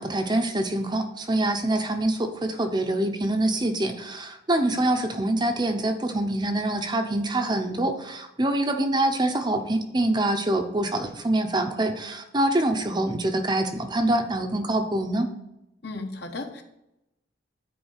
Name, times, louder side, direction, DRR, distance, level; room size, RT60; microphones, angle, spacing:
voice 1, 0.0-15.3, right 1 dB, 25° right, 5 dB, 0.7 m, -25 dB
voice 2, 15.8-16.6, left 2 dB, 60° left, 4 dB, 1.3 m, -35 dB
10.0 x 4.8 x 6.5 m, 0.88 s
head